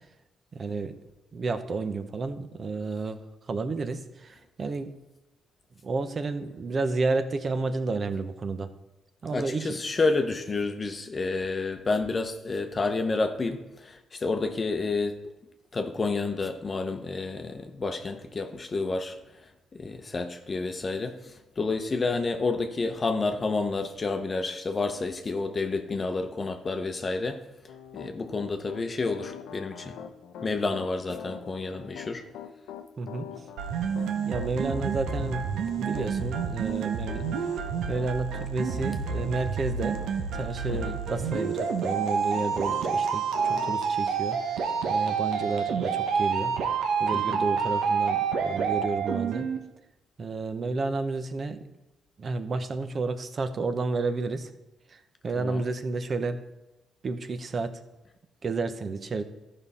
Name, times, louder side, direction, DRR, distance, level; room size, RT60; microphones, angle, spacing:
voice 1, 0.5-0.9 1.3-3.2 3.5-4.9 5.8-8.7 9.2-9.8 33.0-33.3 34.2-37.2 37.9-44.4 44.8-46.5 47.0-49.5 50.2-51.6 52.2-54.5 54.9-56.4 57.0-57.8 58.4-59.2, right 3 dB, 45° right, 0.8 m, -31 dB
voice 2, 9.3-15.2 15.7-19.2 19.8-21.2 21.6-27.4 27.9-29.9 30.4-32.2 40.7-41.0 47.1-47.4 55.4-55.6, left 3 dB, 35° left, 0.8 m, -29 dB
Piano, 27.7-42.9 43.3-43.7, left 8 dB, 85° left, 0.6 m, -43 dB
sound 1, 33.6-49.6, right 6 dB, 80° right, 0.9 m, -28 dB
13.0 x 5.4 x 4.2 m
cardioid pair, 90°, 0 cm